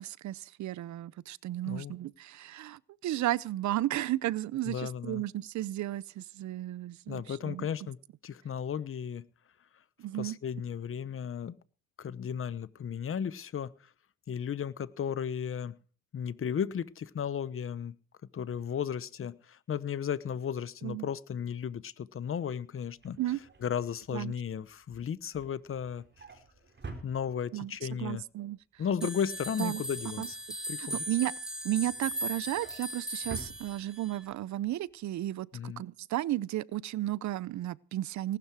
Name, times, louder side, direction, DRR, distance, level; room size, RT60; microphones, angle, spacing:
voice 1, 0.0-7.7 10.0-10.4 20.8-21.1 23.2-23.4 24.1-24.3 27.5-28.6 29.6-29.8 30.2-30.3 30.8-31.3 31.6-38.4, right 14 dB, 70° right, 0.7 m, -34 dB
voice 2, 4.7-5.2 7.1-8.0 8.2-9.2 10.2-11.5 12.0-13.7 14.3-15.7 16.1-17.9 18.3-23.2 23.6-26.0 27.0-28.2 28.8-30.4 30.7-31.0 35.5-35.8, left 8 dB, 45° left, 1.0 m, -34 dB
Drawer open or close, 23.0-27.8 28.2-28.5 28.7-31.0 31.4-34.4 34.7-34.9 35.2-35.3, right 3 dB, 35° right, 4.2 m, -50 dB
sound 1, 29.0-34.2, right 1 dB, ahead, 3.8 m, -38 dB
19.0 x 12.0 x 4.7 m
cardioid pair, 90°, 30 cm